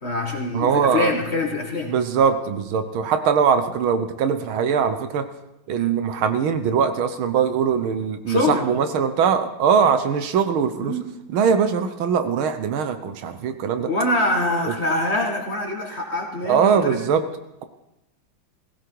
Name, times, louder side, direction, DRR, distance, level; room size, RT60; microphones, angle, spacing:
voice 1, 0.0-1.9 8.3-8.7 10.8-11.0 13.9-17.0, left 2 dB, 30° left, 2 dB, 1.9 m, -24 dB
voice 2, 0.5-1.1 1.9-5.3 5.7-10.9 11.3-13.9 16.4-17.2, right 7 dB, 70° right, 9 dB, 1.7 m, -21 dB
16.0 x 16.0 x 4.7 m, 0.90 s
omnidirectional pair, 2.4 m